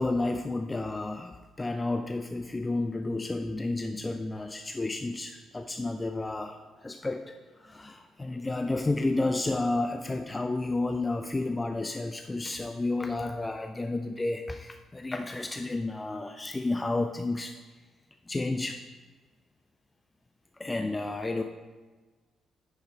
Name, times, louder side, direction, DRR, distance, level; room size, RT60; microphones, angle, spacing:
voice 1, 0.0-7.3 7.6-17.6 18.3-18.8 20.6-21.4, left 2 dB, 25° left, 6 dB, 0.5 m, -31 dB
9.3 x 5.7 x 4.5 m, 1.3 s
hypercardioid pair, 40°, 0 cm